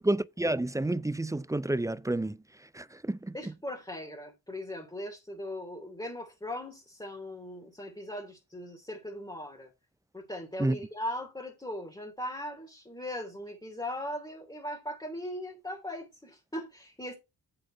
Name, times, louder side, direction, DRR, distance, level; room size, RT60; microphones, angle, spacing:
voice 1, 0.0-2.4 2.7-3.3 10.6-10.8, right 2 dB, 10° right, 0.4 m, -29 dB
voice 2, 3.3-9.7 10.1-17.1, left 1 dB, 10° left, 3.1 m, -39 dB
7.8 x 7.7 x 4.5 m
cardioid pair, 60°, 36 cm